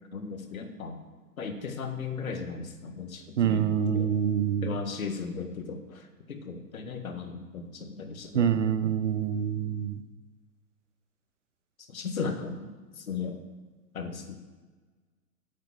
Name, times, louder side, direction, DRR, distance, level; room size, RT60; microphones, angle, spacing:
voice 1, 0.1-1.0 1.4-4.1 4.6-8.5 11.9-13.4 13.9-14.4, left 5 dB, 60° left, 6 dB, 1.8 m, -36 dB
voice 2, 3.4-4.8 8.3-10.0, right 8 dB, 50° right, 12 dB, 0.9 m, -26 dB
9.6 x 7.5 x 7.4 m, 1.4 s
figure-of-eight pair, 120°, 47 cm